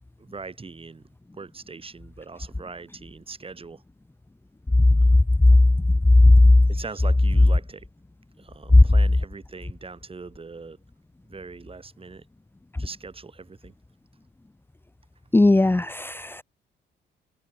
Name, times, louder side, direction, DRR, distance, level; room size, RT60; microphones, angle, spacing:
voice 1, 0.2-1.1 1.3-3.8 6.7-7.9 8.4-10.8 11.3-12.2 12.8-13.7, right 4 dB, 30° right, 2.5 m, -41 dB
voice 2, 6.2-6.6 8.7-8.8 15.3-16.4, left 2 dB, 10° left, 1.0 m, -14 dB
cardioid pair, 90°, 20 cm